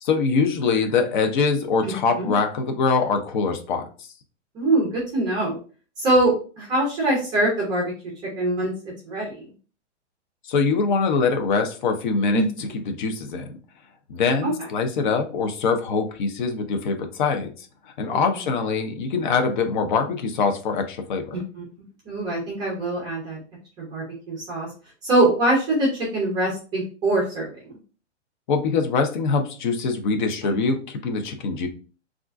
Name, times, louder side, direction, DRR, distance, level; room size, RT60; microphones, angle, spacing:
voice 1, 0.0-4.1 10.5-13.5 14.1-17.7 18.0-21.4 28.5-31.7, left 4 dB, 40° left, 6 dB, 0.6 m, -23 dB
voice 2, 1.8-2.3 4.5-5.6 6.0-7.9 8.4-8.7 9.1-9.4 12.3-12.5 21.3-21.6 22.1-23.4 23.8-24.7 25.0-27.5 30.4-30.5, right 2 dB, 10° right, -4 dB, 0.5 m, -23 dB
3.5 x 2.4 x 2.4 m, 0.38 s
hypercardioid pair, 160°, 36 cm